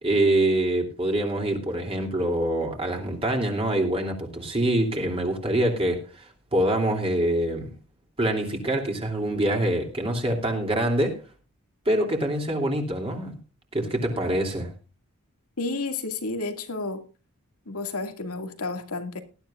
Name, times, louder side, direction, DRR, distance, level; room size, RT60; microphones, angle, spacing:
voice 1, 0.0-7.7 8.2-11.2 11.8-13.3 13.7-14.7, right 1 dB, 25° right, 2.9 m, -25 dB
voice 2, 15.6-17.0 17.7-19.2, left 3 dB, 85° left, 2.2 m, -31 dB
19.0 x 12.5 x 2.5 m
head